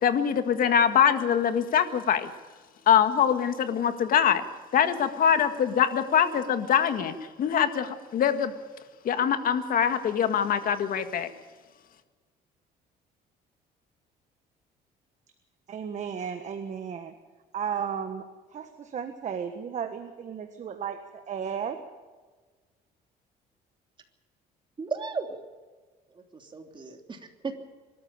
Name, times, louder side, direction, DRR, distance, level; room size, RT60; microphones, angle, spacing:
voice 1, 0.0-2.3 2.9-4.4 4.7-8.5 9.0-11.3, left 8 dB, 55° left, 9 dB, 1.9 m, -23 dB
voice 2, 15.7-17.1 17.5-18.3 18.5-21.8, right 7 dB, 45° right, 7 dB, 1.5 m, -34 dB
voice 3, 24.8-25.4 26.1-27.5, right 4 dB, 30° right, 4 dB, 3.0 m, -35 dB
24.0 x 13.5 x 8.7 m, 1.4 s
cardioid pair, 110°, 17 cm